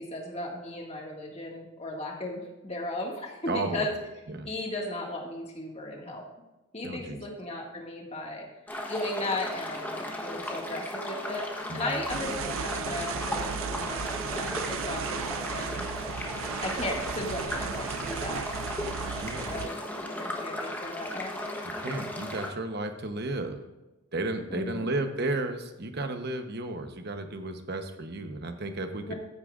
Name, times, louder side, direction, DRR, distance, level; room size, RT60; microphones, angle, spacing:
voice 1, 0.0-3.9 4.4-6.3 6.7-8.5 8.9-11.4 11.7-15.9 16.6-18.4 19.2-21.3 24.5-24.9 29.1-29.2, left 1 dB, 30° left, 0 dB, 2.0 m, -36 dB
voice 2, 3.5-3.9 4.3-4.5 6.8-7.2 11.7-12.0 19.2-19.5 21.6-23.6 24.1-29.1, right 2 dB, 50° right, 6 dB, 1.0 m, -33 dB
sound 1, 8.7-22.5, left 1 dB, 10° left, 1.1 m, -36 dB
sound 2, 12.1-19.7, right 7 dB, 70° right, 0.4 m, -35 dB
15.0 x 8.8 x 2.5 m, 1.1 s
head